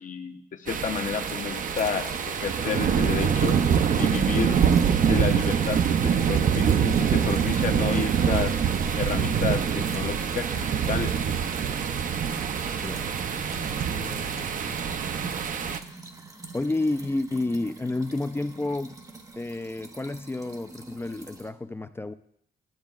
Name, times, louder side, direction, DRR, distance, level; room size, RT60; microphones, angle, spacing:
voice 1, 0.0-3.6 4.0-4.6 5.1-8.5 9.0-11.3, left 6 dB, 55° left, 6 dB, 0.7 m, -31 dB
sound 1, 0.7-15.8, right 7 dB, 55° right, 0.5 m, -25 dB
sound 2, 1.7-21.5, right 2 dB, 20° right, 0.7 m, -44 dB
voice 2, 13.9-14.8 16.5-19.0 19.4-22.1, left 2 dB, 15° left, 11 dB, 0.3 m, -30 dB
12.0 x 7.2 x 2.4 m, 0.70 s
cardioid pair, 90°, 16 cm